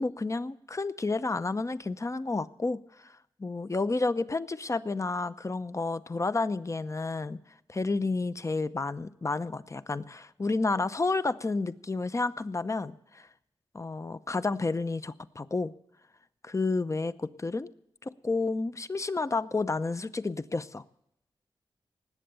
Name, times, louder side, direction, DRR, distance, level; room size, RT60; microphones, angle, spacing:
voice 1, 0.0-3.1 3.4-7.4 7.7-13.3 13.7-15.7 16.4-17.7 18.0-20.8, left 3 dB, 30° left, 13 dB, 0.7 m, -30 dB
19.0 x 7.8 x 6.9 m, 0.79 s
cardioid pair, 45°, 10 cm